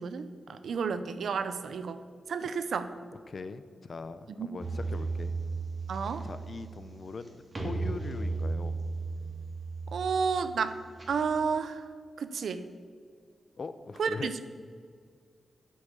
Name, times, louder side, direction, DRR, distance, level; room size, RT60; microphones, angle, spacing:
voice 1, 0.0-2.0 2.3-2.9 4.4-4.5 5.9-6.2 9.9-10.8 11.1-11.8 12.2-12.6 14.0-14.3, right 5 dB, 80° right, 11 dB, 0.7 m, -31 dB
voice 2, 3.3-5.3 6.2-8.8 13.6-14.4, left 4 dB, 50° left, 12 dB, 0.6 m, -41 dB
sound 1, 4.6-11.6, right 3 dB, 30° right, 2.2 m, -36 dB
8.6 x 8.2 x 7.1 m, 2.1 s
wide cardioid pair, 105°, 0 cm